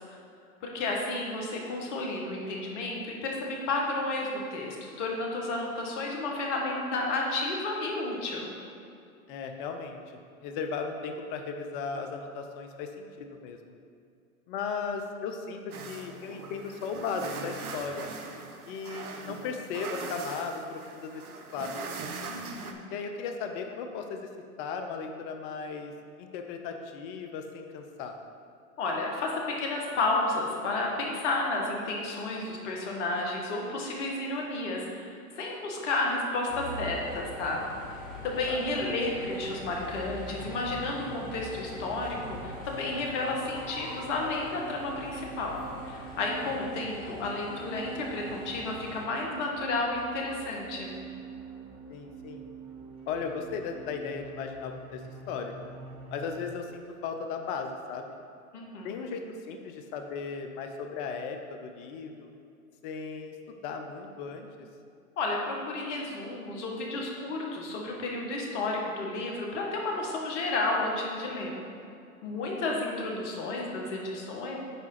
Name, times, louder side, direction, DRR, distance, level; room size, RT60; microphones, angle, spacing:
voice 1, 0.6-8.5 22.3-22.8 28.8-35.0 35.3-37.6 38.2-51.0 58.5-59.0 65.2-71.6 72.2-74.5, left 2 dB, 50° left, -1 dB, 1.8 m, -32 dB
voice 2, 9.3-10.0 10.4-13.6 14.5-18.1 18.7-21.2 21.5-21.7 22.9-24.3 24.6-25.9 26.2-28.1 38.5-38.6 46.6-46.7 51.9-52.4 53.1-55.0 55.3-55.5 56.1-58.2 58.8-62.3 62.8-64.7, left 5 dB, 35° left, 5 dB, 0.8 m, -36 dB
sound 1, 15.7-22.7, right 4 dB, 75° right, 0.9 m, -40 dB
sound 2, 36.5-49.0, equal, 20° left, 1.9 m, -42 dB
sound 3, 40.2-56.6, right 4 dB, 10° right, 0.6 m, -46 dB
9.4 x 3.6 x 5.7 m, 2.5 s
hypercardioid pair, 120°, 44 cm